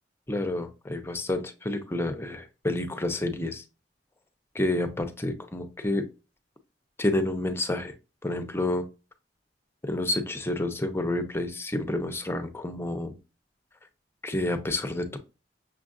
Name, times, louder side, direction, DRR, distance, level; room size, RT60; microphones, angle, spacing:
voice 1, 0.3-3.6 4.5-6.1 7.0-7.9 8.2-8.9 9.8-13.2 14.2-15.2, left 1 dB, 15° left, 8 dB, 0.6 m, -29 dB
6.2 x 2.5 x 2.4 m, 0.30 s
head